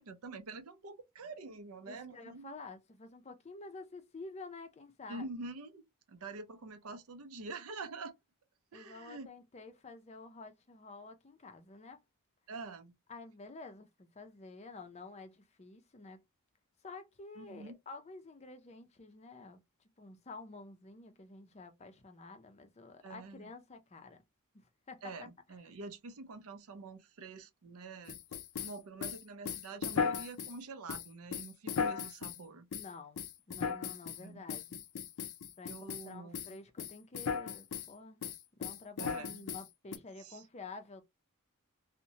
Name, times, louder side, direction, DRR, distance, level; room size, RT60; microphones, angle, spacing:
voice 1, 0.0-2.5 5.1-8.1 8.7-9.3 12.5-12.9 17.4-17.7 23.0-23.5 25.0-28.2 28.6-32.7 34.2-34.4 35.7-36.6 39.0-39.4 40.2-40.4, right 3 dB, 70° right, 0.5 m, -46 dB
voice 2, 1.9-5.3 8.7-12.0 13.1-16.2 16.8-19.6 20.0-24.2 24.5-25.1 32.7-34.8 35.6-38.2 38.6-41.0, left 3 dB, 30° left, 0.4 m, -50 dB
sound 1, 28.1-30.6 30.9-32.4 32.7-32.9 33.2-34.2 34.5-36.1 36.3-36.5 36.8-37.9 38.2-40.0, left 6 dB, 80° left, 0.5 m, -37 dB
2.8 x 2.1 x 2.7 m
head